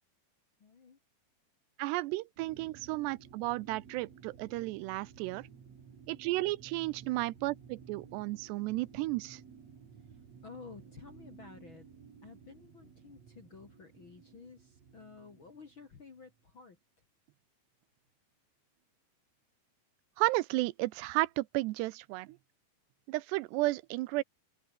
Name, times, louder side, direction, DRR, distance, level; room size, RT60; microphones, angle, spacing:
voice 1, 0.6-1.0 10.1-10.2 10.4-11.9 12.2-16.8, left 5 dB, 40° left, 1.9 m, -52 dB
voice 2, 1.8-5.5 6.1-9.4 20.2-22.4 23.1-24.2, right 20 dB, 80° right, 2.8 m, -33 dB
sound 1, 2.4-16.5, right 6 dB, 40° right, 3.6 m, -55 dB
open air
omnidirectional pair, 5.0 m